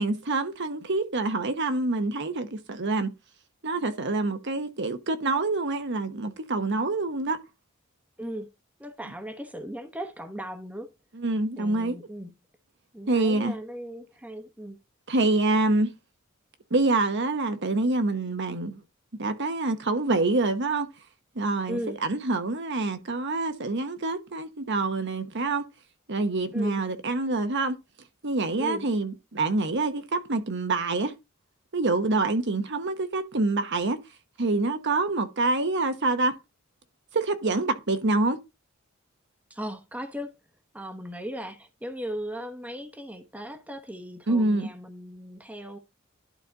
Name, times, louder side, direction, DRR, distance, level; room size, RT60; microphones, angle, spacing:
voice 1, 0.0-3.1 3.6-7.4 11.1-12.0 13.1-13.6 15.1-15.9 16.7-18.8 19.2-20.9 21.3-25.6 26.1-27.8 28.2-31.1 31.7-34.0 34.4-36.3 37.1-38.4 44.3-44.7, right 2 dB, 60° right, 1.1 m, -26 dB
voice 2, 8.2-8.5 8.8-10.9 11.6-12.3 12.9-14.8 21.7-22.0 26.5-26.8 28.6-28.9 39.5-40.3 40.7-45.8, equal, 5° right, 1.1 m, -37 dB
11.5 x 4.0 x 4.0 m
head